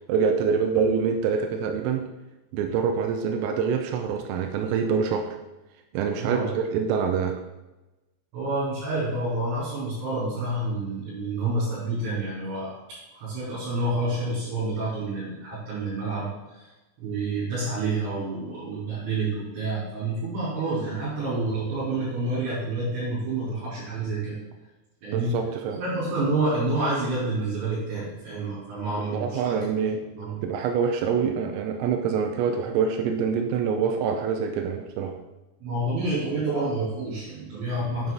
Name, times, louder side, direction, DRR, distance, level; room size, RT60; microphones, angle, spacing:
voice 1, 0.1-2.1 2.5-5.4 5.9-7.4 25.1-25.8 29.0-30.1 30.4-35.2, right 6 dB, 85° right, 5 dB, 3.6 m, -25 dB
voice 2, 6.2-6.5 8.3-12.8 13.1-16.7 17.0-24.4 25.0-25.4 25.8-29.6 30.1-30.5 35.6-38.1, right 2 dB, 65° right, -10 dB, 6.4 m, -28 dB
10.5 x 8.2 x 4.0 m, 1.0 s
omnidirectional pair, 5.9 m